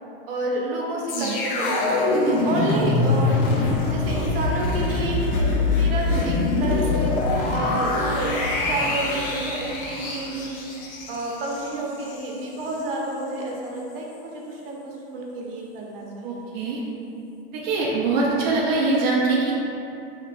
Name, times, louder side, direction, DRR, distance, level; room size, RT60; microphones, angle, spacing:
voice 1, 0.3-3.3 3.8-7.1 7.5-10.6 11.1-16.5, right 2 dB, 70° right, -2 dB, 0.8 m, -30 dB
sound 1, 1.1-12.3 12.6-12.8, left 3 dB, 70° left, 0.8 m, -24 dB
voice 2, 16.2-16.8 17.5-19.5, right 3 dB, 45° right, -5 dB, 0.5 m, -23 dB
4.4 x 2.9 x 2.5 m, 2.9 s
supercardioid pair, 145°, 29 cm